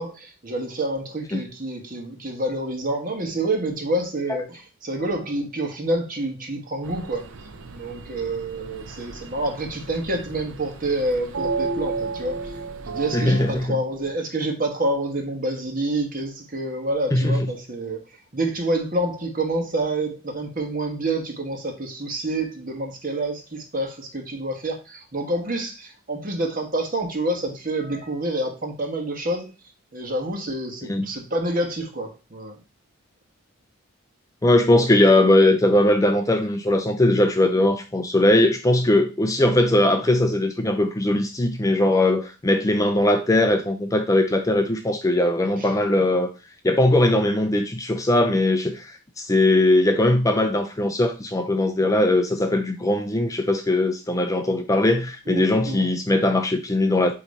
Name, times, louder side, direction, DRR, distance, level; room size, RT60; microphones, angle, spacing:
voice 1, 0.0-7.2 7.7-12.5 12.8-18.0 18.3-29.5 29.9-32.6 45.6-45.7 55.3-55.9, right 1 dB, 40° right, 1.4 m, -28 dB
sound 1, 6.8-13.7, right 4 dB, 65° right, 0.7 m, -33 dB
voice 2, 13.1-13.8 17.1-17.5 30.9-31.1 34.4-46.3 46.6-57.1, left 1 dB, 15° left, 0.4 m, -20 dB
8.3 x 3.1 x 4.1 m
head